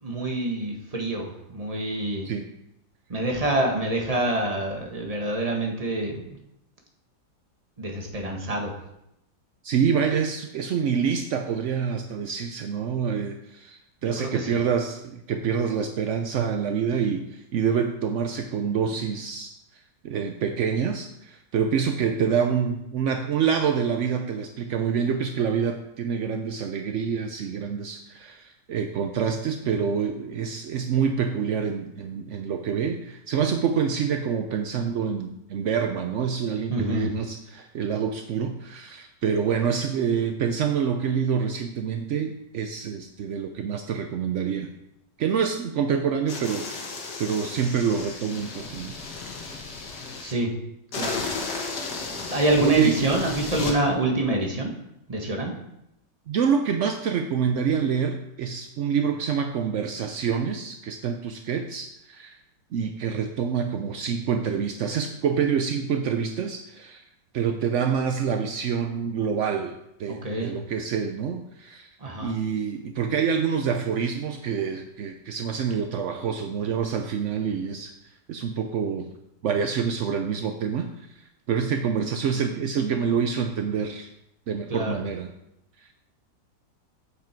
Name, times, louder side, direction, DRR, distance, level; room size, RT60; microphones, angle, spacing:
voice 1, 0.0-2.3 3.1-6.2 7.8-8.7 14.0-14.6 36.7-37.1 50.2-50.5 50.9-51.2 52.3-54.7 55.1-55.5 70.1-70.6 72.0-72.3 84.7-85.0, right 2 dB, 20° right, 1 dB, 1.4 m, -26 dB
voice 2, 9.6-19.5 20.0-44.7 45.2-46.7 47.2-49.0 52.6-53.0 56.3-62.4 62.7-67.0 67.3-71.9 72.2-77.9 78.3-79.1 79.4-84.1 84.5-85.3 85.8-85.9, right 7 dB, 70° right, 5 dB, 0.7 m, -27 dB
sound 1, 46.3-50.3 50.9-53.8, left 4 dB, 65° left, 1.9 m, -34 dB
8.4 x 7.4 x 4.5 m, 0.84 s
omnidirectional pair, 2.0 m